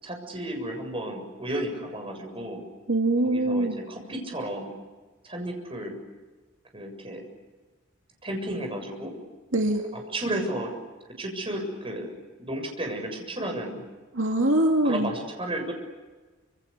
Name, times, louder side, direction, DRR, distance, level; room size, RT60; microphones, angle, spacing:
voice 1, 0.0-2.6 3.2-4.7 5.2-6.0 6.7-7.2 8.2-9.2 9.9-10.7 11.2-13.8 14.8-15.7, right 1 dB, 25° right, 3 dB, 7.2 m, -33 dB
voice 2, 2.9-3.8 9.5-9.8 14.2-15.1, right 1 dB, 70° right, 2 dB, 2.6 m, -23 dB
29.5 x 27.5 x 6.9 m, 1.3 s
head